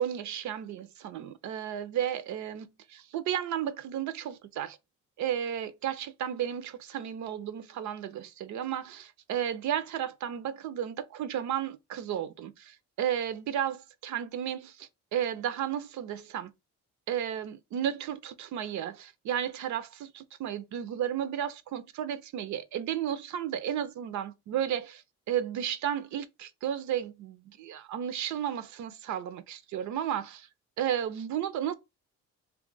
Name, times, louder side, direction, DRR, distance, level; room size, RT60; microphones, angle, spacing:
voice 1, 0.0-4.8 5.2-16.5 17.1-30.5 30.8-31.7, right 10 dB, 70° right, 0.5 m, -33 dB
2.8 x 2.4 x 3.8 m
cardioid pair, 90°, 30 cm